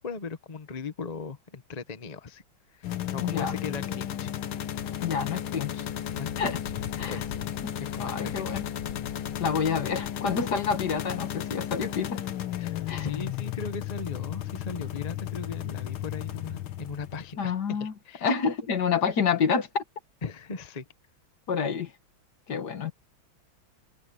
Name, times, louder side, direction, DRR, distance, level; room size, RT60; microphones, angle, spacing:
voice 1, 0.0-2.4 2.7-4.3 6.2-6.5 7.0-7.3 7.8-8.6 12.6-18.3 20.2-20.8, left 4 dB, 30° left, 0.8 m, -38 dB
sound 1, 2.8-17.3, left 11 dB, 80° left, 1.9 m, -34 dB
voice 2, 3.2-3.6 5.0-5.9 6.4-6.6 7.0-7.2 7.6-7.7 8.0-8.6 9.4-12.2 12.9-13.1 17.4-17.9 18.2-19.8 21.5-21.9 22.5-22.9, left 6 dB, 55° left, 2.0 m, -28 dB
omnidirectional pair, 2.3 m